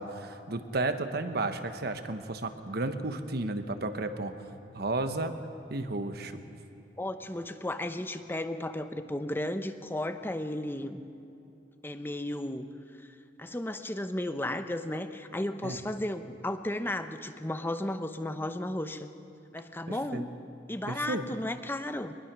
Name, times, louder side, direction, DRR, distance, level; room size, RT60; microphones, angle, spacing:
voice 1, 0.0-4.3 4.7-5.3 5.7-6.4 15.6-15.8 19.9-20.2 20.9-21.2, right 2 dB, 60° right, 8 dB, 1.2 m, -33 dB
voice 2, 7.0-11.0 11.8-12.7 13.4-19.1 19.5-20.3 20.7-22.1, left 1 dB, 10° left, 9 dB, 0.8 m, -34 dB
23.0 x 20.5 x 6.2 m, 2.7 s
head